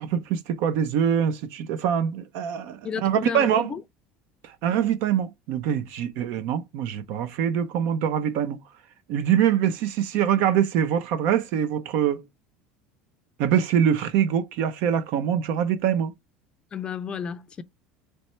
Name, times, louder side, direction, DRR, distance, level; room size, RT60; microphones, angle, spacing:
voice 1, 0.0-3.7 4.6-8.6 9.1-12.2 13.4-16.1, right 9 dB, 65° right, 0.6 m, -24 dB
voice 2, 2.8-3.8 16.7-17.6, left 7 dB, 25° left, 0.5 m, -32 dB
4.2 x 3.2 x 3.2 m
cardioid pair, 145°, 4 cm